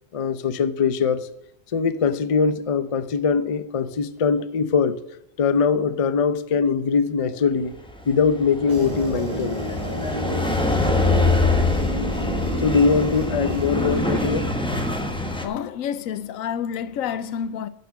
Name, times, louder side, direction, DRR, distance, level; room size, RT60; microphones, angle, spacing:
voice 1, 0.1-1.3 1.7-5.0 5.4-7.7 8.1-9.7 12.6-14.5, left 5 dB, 45° left, 0.4 m, -22 dB
sound 1, 7.9-15.4, left 2 dB, 5° left, 1.1 m, -24 dB
sound 2, 8.7-14.2, right 1 dB, 35° right, 1.9 m, -31 dB
voice 2, 15.3-17.7, left 8 dB, 90° left, 1.1 m, -29 dB
11.0 x 6.7 x 6.4 m
omnidirectional pair, 1.4 m